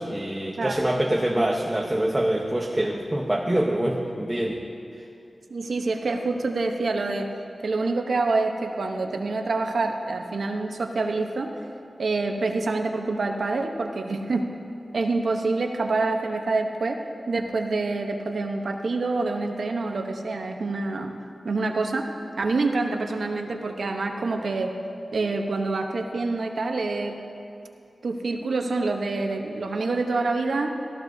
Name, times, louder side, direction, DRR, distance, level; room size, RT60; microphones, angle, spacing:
voice 1, 0.0-4.6, right 1 dB, 20° right, 0 dB, 0.9 m, -25 dB
voice 2, 5.5-7.3 7.6-11.5 12.0-14.5 14.9-21.1 21.4-22.1 22.4-24.7 25.1-27.2 28.0-30.7, right 3 dB, 75° right, 3 dB, 0.9 m, -26 dB
16.5 x 14.0 x 2.7 m, 2.6 s
wide cardioid pair, 65°, 0 cm